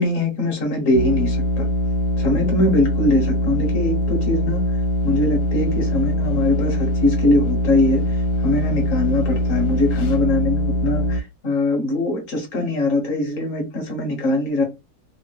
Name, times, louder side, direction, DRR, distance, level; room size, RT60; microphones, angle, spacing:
voice 1, 0.0-1.7 2.2-4.6 5.0-8.0 8.4-14.6, left 1 dB, 50° left, 1.2 m, -22 dB
sound 1, 0.9-11.2, left 1 dB, 70° left, 1.3 m, -22 dB
3.5 x 2.0 x 3.1 m
omnidirectional pair, 2.1 m